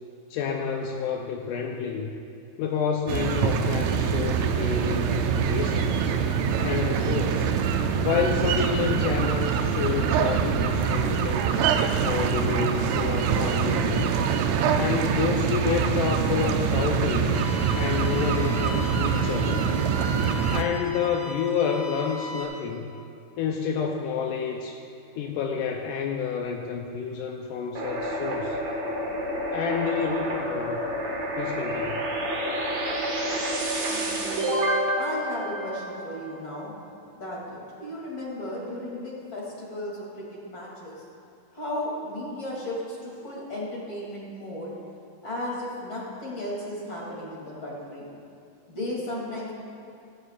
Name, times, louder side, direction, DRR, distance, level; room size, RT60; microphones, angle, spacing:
voice 1, 0.3-2.1 2.6-6.1 6.6-7.5 8.0-11.6 12.0-14.2 14.7-17.4 17.7-19.7 20.5-22.9 23.4-24.8 25.2-28.6 29.5-30.8 31.4-32.1, left 6 dB, 80° left, 1 dB, 2.2 m, -29 dB
sound 1, 3.1-20.6, right 6 dB, 80° right, 1.6 m, -24 dB
sound 2, 17.3-22.4, left 2 dB, 60° left, 0.7 m, -38 dB
sound 3, 27.7-36.4, right 1 dB, 55° right, 2.7 m, -29 dB
voice 2, 33.9-34.6 35.0-36.7 37.1-41.0 41.5-44.7 45.2-48.1 48.7-49.5, left 1 dB, 35° left, -6 dB, 3.3 m, -35 dB
16.0 x 16.0 x 2.5 m, 2.5 s
omnidirectional pair, 3.9 m